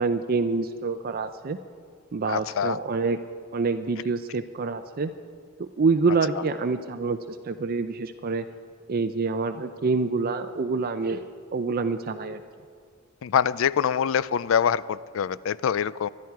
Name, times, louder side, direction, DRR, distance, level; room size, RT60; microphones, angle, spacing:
voice 1, 0.0-1.6 2.1-3.2 3.5-5.1 5.6-8.4 8.9-11.2 11.5-12.4, right 4 dB, 45° right, 9 dB, 0.5 m, -26 dB
voice 2, 2.3-2.8 13.2-16.1, left 8 dB, 70° left, 19 dB, 0.4 m, -24 dB
24.5 x 11.0 x 4.7 m, 2.1 s
head